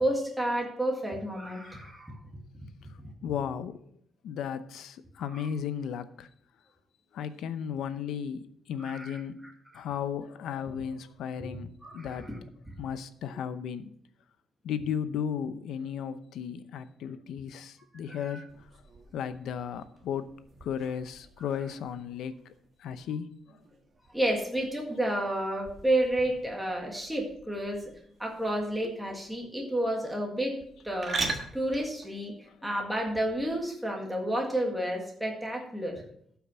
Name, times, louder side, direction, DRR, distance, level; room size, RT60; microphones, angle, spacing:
voice 1, 0.0-2.1 5.3-5.5 8.8-9.5 11.8-12.1 18.2-18.4 24.1-27.8 28.2-30.6 30.8-32.3 32.6-36.0, right 1 dB, 5° right, 0 dB, 1.9 m, -30 dB
voice 2, 3.2-3.8 4.2-6.3 7.1-9.4 9.7-12.3 12.8-13.9 14.6-18.5 19.1-20.3 20.6-22.5 22.8-23.3 28.7-29.2 32.5-32.6, left 8 dB, 75° left, 12 dB, 0.7 m, -35 dB
sound 1, 18.5-33.6, right 3 dB, 30° right, 1.4 m, -43 dB
12.5 x 5.9 x 5.7 m, 0.66 s
cardioid pair, 180°, 0 cm